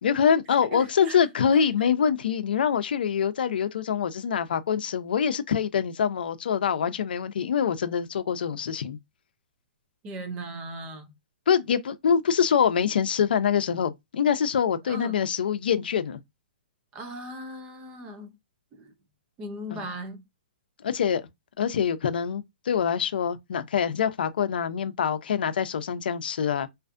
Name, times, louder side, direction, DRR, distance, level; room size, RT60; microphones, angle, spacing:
voice 1, 0.0-9.0 11.5-16.2 19.7-19.8 20.8-21.2 21.6-26.7, left 7 dB, 70° left, 0.5 m, -25 dB
voice 2, 0.7-1.2 1.5-1.6 10.0-11.1 14.9-15.2 16.9-18.3 18.7-18.9 19.4-20.2, right 1 dB, 20° right, 0.4 m, -38 dB
2.5 x 2.4 x 2.5 m
hypercardioid pair, 155°, 5 cm